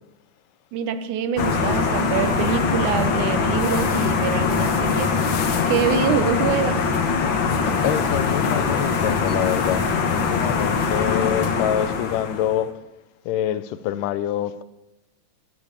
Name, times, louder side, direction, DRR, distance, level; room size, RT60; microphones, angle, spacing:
voice 1, 0.7-5.2 5.7-6.8, right 8 dB, 75° right, 11 dB, 2.2 m, -25 dB
sound 1, 1.4-12.6, left 5 dB, 50° left, 1.6 m, -22 dB
voice 2, 7.8-9.9 10.1-12.7 13.3-14.6, left 11 dB, 80° left, 14 dB, 2.3 m, -25 dB
15.0 x 11.0 x 8.2 m, 0.97 s
omnidirectional pair, 3.8 m